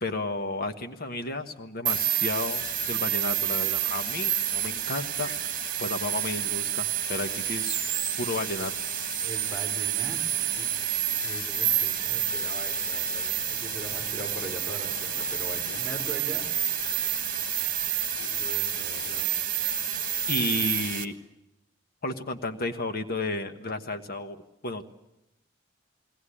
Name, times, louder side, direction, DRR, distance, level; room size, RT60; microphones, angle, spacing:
voice 1, 0.0-5.5 5.8-7.8 8.2-8.7 20.3-21.2 22.0-24.9, left 2 dB, 50° left, 7 dB, 1.3 m, -32 dB
sound 1, 1.9-21.0, right 9 dB, 45° right, 1.5 m, -29 dB
voice 2, 9.2-10.7 10.9-17.0 18.1-19.3, right 2 dB, ahead, -1 dB, 5.1 m, -41 dB
Waves surf, 13.2-18.7, equal, 75° left, 6.3 m, -50 dB
21.0 x 18.5 x 10.0 m, 0.91 s
head